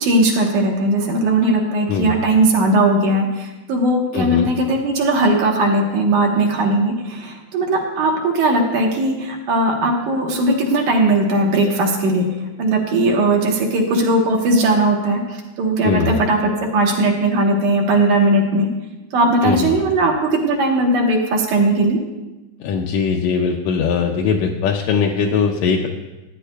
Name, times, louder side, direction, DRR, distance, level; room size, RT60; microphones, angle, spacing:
voice 1, 0.0-12.3 12.6-18.7 19.1-22.0, right 2 dB, 75° right, 0 dB, 2.4 m, -18 dB
voice 2, 1.9-2.2 4.1-4.5 15.8-16.2 19.4-19.7 22.6-25.9, left 6 dB, 80° left, 1 dB, 1.6 m, -20 dB
15.0 x 8.9 x 2.2 m, 1.1 s
omnidirectional pair, 3.7 m